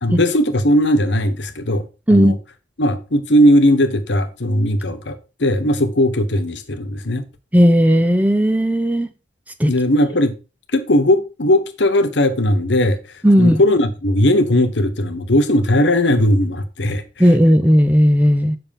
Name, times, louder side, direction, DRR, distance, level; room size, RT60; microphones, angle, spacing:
voice 1, 0.0-1.8 2.1-2.3 2.8-7.2 9.7-10.3 10.7-13.0 13.4-17.0, left 1 dB, 70° left, 1.2 m, -17 dB
voice 2, 7.5-9.1 9.6-9.7 13.2-13.6 17.2-18.6, equal, 10° right, 0.7 m, -14 dB
7.7 x 5.9 x 5.3 m
head